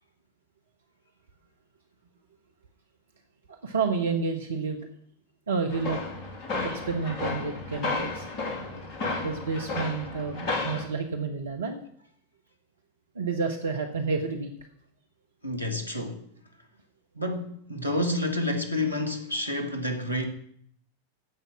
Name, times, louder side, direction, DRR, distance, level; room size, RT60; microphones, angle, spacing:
voice 1, 3.6-4.8 5.5-6.0 6.6-8.3 9.2-11.8 13.1-14.5, right 4 dB, 70° right, 1.2 m, -30 dB
sound 1, 5.7-10.9, left 3 dB, 40° left, 2.6 m, -33 dB
voice 2, 15.4-16.2 17.1-20.3, left 1 dB, 90° right, 1.7 m, -29 dB
15.5 x 5.8 x 7.4 m
figure-of-eight pair, 90°, 0 cm